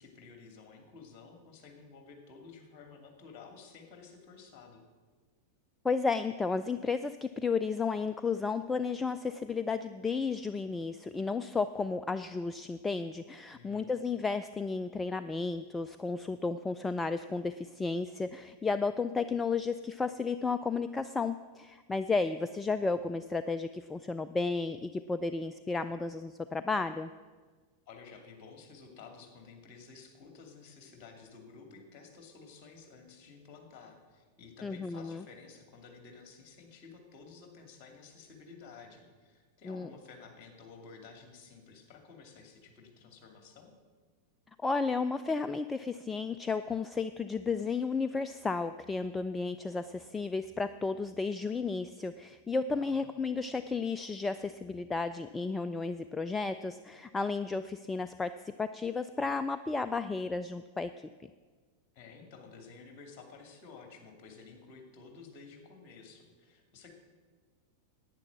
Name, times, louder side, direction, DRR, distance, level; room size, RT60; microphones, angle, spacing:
voice 1, 0.0-4.8 13.5-13.9 27.9-43.7 52.8-53.1 61.9-66.9, left 5 dB, 40° left, 4 dB, 2.4 m, -52 dB
voice 2, 5.8-27.1 34.6-35.2 39.7-39.9 44.6-58.3 58.6-60.9, left 4 dB, 10° left, 12 dB, 0.3 m, -33 dB
10.5 x 9.1 x 7.3 m, 1.5 s
figure-of-eight pair, 90°, 0 cm